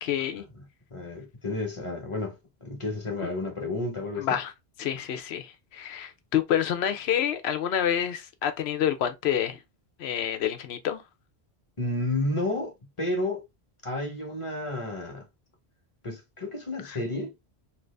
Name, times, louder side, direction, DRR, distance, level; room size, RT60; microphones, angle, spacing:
voice 1, 0.0-0.5 4.2-4.5 4.8-9.6 10.0-11.0 16.9-17.0, left 9 dB, 80° left, 0.9 m, -28 dB
voice 2, 0.9-2.4 2.6-4.4 11.8-13.4 13.8-15.2 16.0-17.3, left 2 dB, 30° left, 1.0 m, -31 dB
2.9 x 2.6 x 3.2 m
omnidirectional pair, 1.1 m